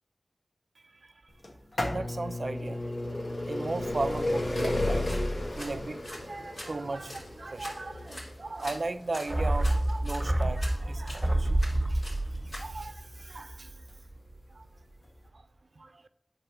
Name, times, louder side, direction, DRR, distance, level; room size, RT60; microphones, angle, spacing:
voice 1, 0.8-1.3 1.9-13.8 14.5-14.7 15.3-15.5 15.8-16.0, right 3 dB, 70° right, 0.5 m, -37 dB
sound 1, 1.4-13.1 13.9-14.0 15.0-15.1 15.2-15.3, left 1 dB, 65° left, 1.5 m, -33 dB
sound 2, 4.3-12.6, left 1 dB, 45° left, 3.3 m, -46 dB
sound 3, 9.3-13.9 14.2-14.3, right 1 dB, 30° right, 1.1 m, -28 dB
9.0 x 3.9 x 7.0 m
wide cardioid pair, 45°, 0 cm